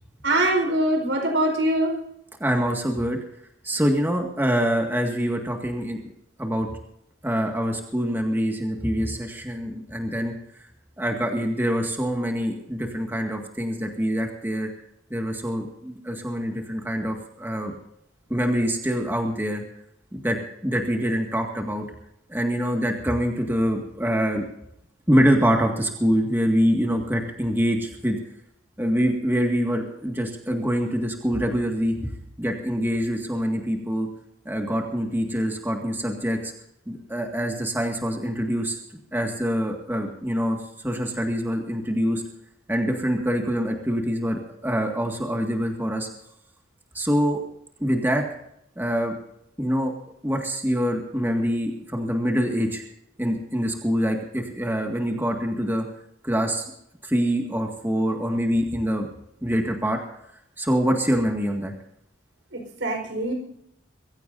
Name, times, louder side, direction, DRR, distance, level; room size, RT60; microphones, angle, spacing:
voice 1, 0.2-2.0 62.5-63.3, right 1 dB, 80° right, 3 dB, 4.8 m, -23 dB
voice 2, 2.4-3.2 3.6-6.1 6.4-6.7 7.2-10.3 11.0-14.7 15.1-17.7 18.3-19.6 20.1-20.4 20.6-21.9 22.3-24.4 25.1-28.2 28.8-32.1 32.4-34.1 34.5-36.5 36.9-38.8 39.1-40.6 40.8-42.2 42.7-46.1 46.9-47.4 47.8-48.2 48.8-49.1 49.6-49.9 50.2-52.8 53.2-55.8 56.2-56.7 57.0-59.1 59.4-60.0 60.6-61.7, equal, 10° right, 2 dB, 1.9 m, -25 dB
24.0 x 15.5 x 2.7 m, 0.76 s
head